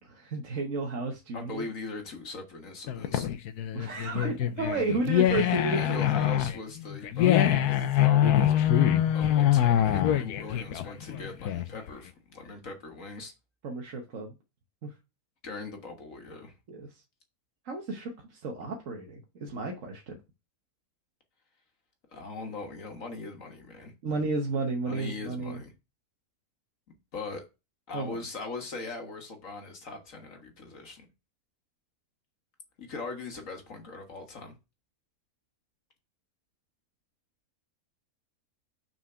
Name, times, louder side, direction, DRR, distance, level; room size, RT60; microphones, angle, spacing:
voice 1, 0.0-1.7 3.7-6.0 13.6-14.3 14.8-14.9 16.7-17.0 17.6-20.2 24.0-25.6 27.9-28.2, right 3 dB, 60° right, 1.3 m, -33 dB
voice 2, 1.3-3.3 5.7-8.7 9.1-13.3 15.4-16.6 22.1-23.9 24.8-25.7 27.1-27.4 27.9-31.0 32.8-34.5, left 3 dB, 55° left, 1.7 m, -40 dB
sound 1, 2.9-11.9, left 11 dB, 80° left, 1.2 m, -24 dB
6.3 x 4.4 x 5.6 m
omnidirectional pair, 1.6 m